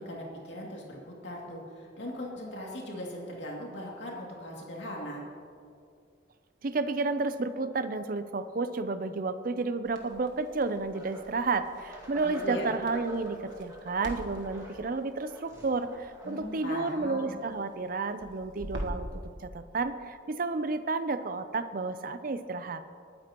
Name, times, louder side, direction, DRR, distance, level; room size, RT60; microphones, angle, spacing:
voice 1, 0.0-5.2 12.2-12.7 16.2-17.4, equal, 75° left, -2 dB, 2.5 m, -39 dB
voice 2, 6.6-19.1 19.4-22.8, right 3 dB, 50° right, 11 dB, 0.5 m, -31 dB
Crackle, 9.8-19.1, equal, 85° right, 1.3 m, -45 dB
sound 1, 10.9-11.4 11.9-16.7, right 1 dB, 15° right, 2.0 m, -47 dB
19.5 x 9.6 x 3.0 m, 2.3 s
head